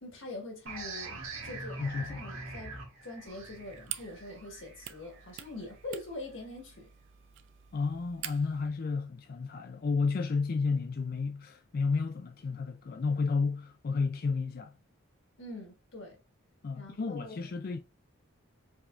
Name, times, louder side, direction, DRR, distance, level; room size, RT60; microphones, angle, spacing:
voice 1, 0.0-6.9 15.4-16.2 16.7-17.3, left 2 dB, 65° left, 1.4 m, -44 dB
sound 1, 0.7-6.0, right 3 dB, 80° right, 1.5 m, -43 dB
voice 2, 1.8-2.3 7.7-14.7 16.6-17.8, left 4 dB, 45° left, 0.3 m, -32 dB
sound 2, 3.3-8.7, right 12 dB, 60° right, 0.4 m, -47 dB
4.9 x 3.4 x 2.4 m
head